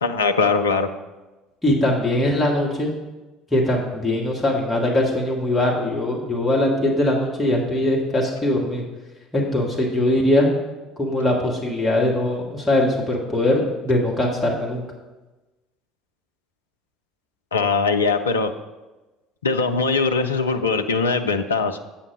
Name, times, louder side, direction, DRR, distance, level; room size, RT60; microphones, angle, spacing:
voice 1, 0.0-0.9 17.5-18.5 19.4-21.8, left 4 dB, 80° left, 7 dB, 0.4 m, -21 dB
voice 2, 1.6-2.9 3.5-8.8 9.3-10.5 11.0-14.8, left 1 dB, 10° left, -3 dB, 1.6 m, -21 dB
8.3 x 5.7 x 4.9 m, 1.1 s
figure-of-eight pair, 60°, 0 cm